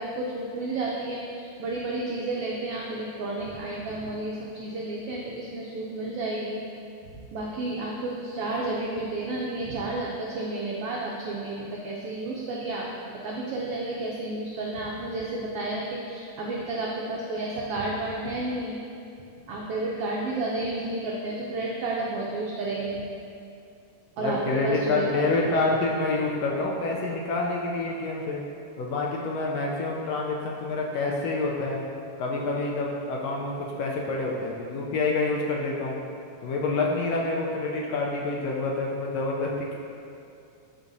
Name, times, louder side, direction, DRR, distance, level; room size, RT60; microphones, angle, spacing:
voice 1, 0.0-6.6 7.3-12.9 13.2-18.8 19.5-23.0 24.2-25.3, right 2 dB, 90° right, -3 dB, 1.3 m, -31 dB
voice 2, 24.2-28.4 28.8-31.9 32.2-36.0 36.4-39.8, left 3 dB, 80° left, -2 dB, 1.6 m, -27 dB
12.0 x 4.1 x 2.7 m, 2.6 s
omnidirectional pair, 3.4 m